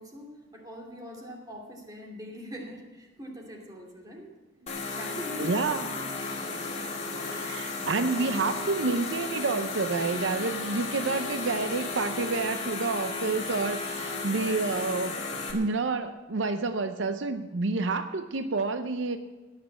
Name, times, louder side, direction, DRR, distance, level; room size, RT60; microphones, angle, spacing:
voice 1, 0.0-4.3 4.9-6.1, equal, 20° right, 0 dB, 2.7 m, -42 dB
sound 1, 4.7-15.5, left 3 dB, 35° left, 2.3 m, -34 dB
voice 2, 5.4-5.8 7.2-15.2 15.5-19.2, right 3 dB, 75° right, 9 dB, 0.6 m, -29 dB
17.5 x 6.6 x 8.6 m, 1.2 s
head